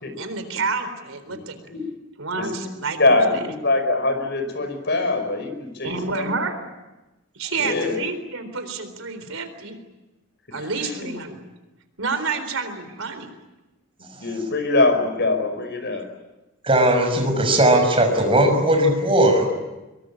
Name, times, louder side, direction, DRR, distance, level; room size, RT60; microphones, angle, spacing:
voice 1, 0.1-1.6 2.2-3.0 3.3-3.4 5.8-6.7 7.3-9.8 10.5-11.4 12.0-13.3, right 4 dB, 75° right, 9 dB, 4.0 m, -29 dB
voice 2, 2.4-2.7 3.0-6.5 7.6-8.0 10.8-10.9 14.2-16.1, left 2 dB, 55° left, 7 dB, 5.3 m, -23 dB
voice 3, 16.6-19.5, right 1 dB, 25° right, 4 dB, 6.1 m, -18 dB
24.0 x 23.0 x 10.0 m, 1.1 s
head